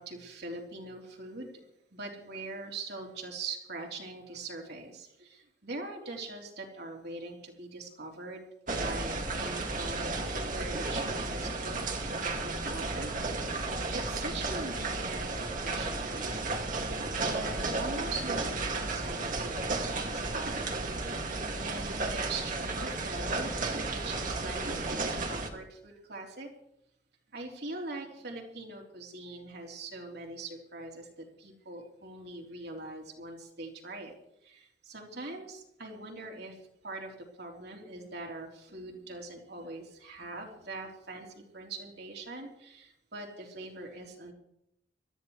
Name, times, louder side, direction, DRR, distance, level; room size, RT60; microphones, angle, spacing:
voice 1, 0.0-1.5 1.9-20.7 21.1-23.5 23.8-26.5 27.3-34.1 34.4-44.3, right 2 dB, 65° right, 0 dB, 3.6 m, -42 dB
sound 1, 8.7-25.5, right 3 dB, 50° right, 2.2 m, -33 dB
25.0 x 13.5 x 3.2 m, 0.79 s
head